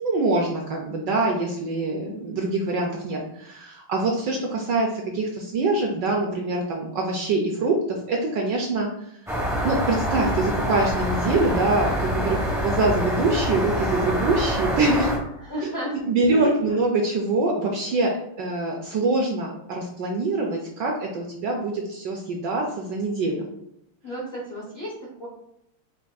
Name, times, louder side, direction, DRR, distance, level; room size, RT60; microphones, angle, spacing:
voice 1, 0.0-8.9 9.6-12.4 12.6-15.1 15.6-23.5, right 2 dB, 70° right, 0 dB, 1.1 m, -24 dB
sound 1, 9.3-15.2, equal, 5° right, 0.5 m, -26 dB
voice 2, 12.1-12.6 15.4-16.0 16.3-16.5 24.0-25.3, equal, 50° left, -6 dB, 0.7 m, -33 dB
6.8 x 2.5 x 2.3 m, 0.78 s
omnidirectional pair, 2.4 m